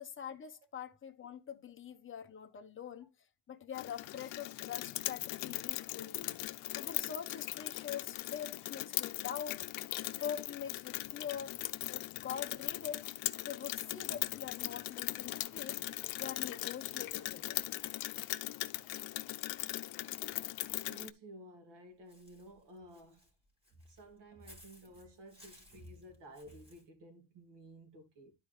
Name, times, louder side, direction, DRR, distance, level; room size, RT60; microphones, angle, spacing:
voice 1, 0.0-3.1 3.5-6.3 6.7-9.6 10.2-11.6 11.9-13.0 13.4-15.8 16.2-17.6, left 8 dB, 25° left, 1.0 m, -44 dB
Rain, 3.7-21.1, left 18 dB, 80° left, 0.7 m, -39 dB
voice 2, 20.9-23.3 23.7-28.4, right 1 dB, 60° right, 2.6 m, -54 dB
Walk footsteps / Bird, 22.1-26.8, left 1 dB, 10° right, 2.7 m, -61 dB
12.0 x 4.5 x 3.3 m
cardioid pair, 150°, 47 cm